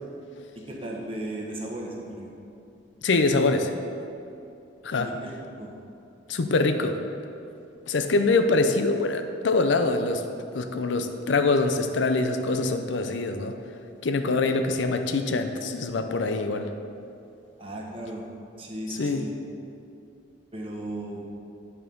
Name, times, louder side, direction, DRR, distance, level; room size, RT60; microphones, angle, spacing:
voice 1, 0.6-2.3 4.9-5.7 17.6-18.3 18.6-19.3 20.5-21.2, right 1 dB, 30° right, -1 dB, 1.1 m, -36 dB
voice 2, 3.0-3.7 4.8-5.1 6.3-7.0 7.9-10.2 10.5-13.6 14.0-16.7 18.9-19.3, left 3 dB, 85° left, 7 dB, 0.5 m, -24 dB
8.9 x 4.4 x 5.3 m, 2.7 s
head